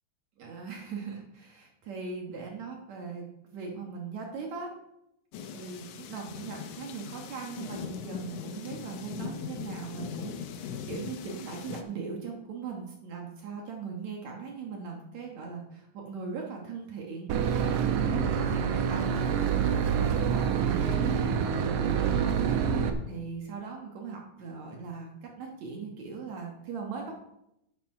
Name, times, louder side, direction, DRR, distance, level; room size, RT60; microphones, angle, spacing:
voice 1, 0.4-3.2 3.5-4.7 5.5-18.2 18.5-27.1, right 5 dB, 60° right, 0 dB, 2.4 m, -40 dB
sound 1, 5.3-11.8, left 7 dB, 70° left, 2.1 m, -40 dB
Boat Water vehicle / Engine, 17.3-22.9, right 7 dB, 80° right, 1.4 m, -26 dB
9.1 x 9.0 x 4.8 m, 0.83 s
omnidirectional pair, 4.0 m